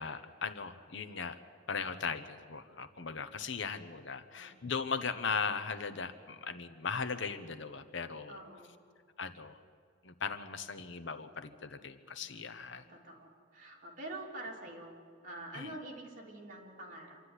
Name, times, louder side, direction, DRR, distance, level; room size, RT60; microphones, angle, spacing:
voice 1, 0.0-1.4 1.7-8.4 9.2-9.6 10.0-12.8 15.5-15.7, left 5 dB, 70° left, 11 dB, 1.0 m, -38 dB
voice 2, 4.3-4.7 8.3-8.8 12.2-12.3 12.7-17.2, right 1 dB, 45° right, -2 dB, 3.4 m, -47 dB
26.5 x 12.0 x 9.9 m, 2.3 s
head